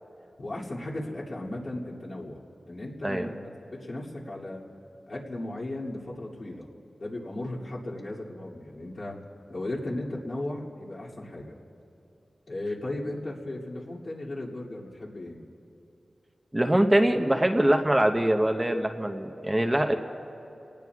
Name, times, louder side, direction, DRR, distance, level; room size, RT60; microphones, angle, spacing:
voice 1, 0.4-2.4 2.7-4.6 5.1-6.7 7.0-9.2 9.5-11.6 12.5-15.4, left 1 dB, 60° left, -6 dB, 2.6 m, -36 dB
voice 2, 16.5-19.9, right 1 dB, 20° right, 4 dB, 0.9 m, -23 dB
28.0 x 18.5 x 2.4 m, 2.8 s
cardioid pair, 60°, 0 cm